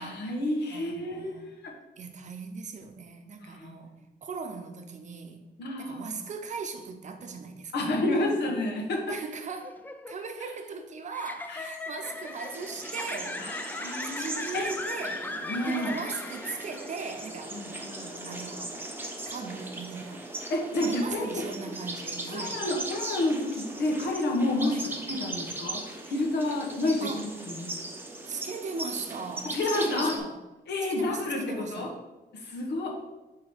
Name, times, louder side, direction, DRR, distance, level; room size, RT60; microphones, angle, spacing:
voice 1, 0.0-1.3 3.6-3.7 5.6-6.0 7.7-9.1 11.5-11.6 13.4-14.3 14.5-14.7 15.5-16.0 17.5-18.3 20.5-21.4 22.3-24.8 25.1-27.1 27.5-27.8 29.5-30.2 30.7-31.9 32.3-33.0, left 1 dB, 85° left, 1 dB, 1.3 m, -29 dB
voice 2, 0.7-1.5 2.0-5.4 5.8-7.9 8.3-8.4 9.1-13.4 14.0-15.3 15.7-17.6 18.0-18.7 19.3-20.2 20.8-22.6 24.7-24.9 27.0-27.3 28.3-30.4 30.8-32.0, right 4 dB, 45° right, 5 dB, 0.7 m, -39 dB
sound 1, 9.5-17.1, left 2 dB, 10° left, 0.3 m, -38 dB
sound 2, 12.0-30.2, right 2 dB, 10° right, 0.7 m, -39 dB
5.0 x 4.0 x 5.6 m, 1.1 s
wide cardioid pair, 155°, 17 cm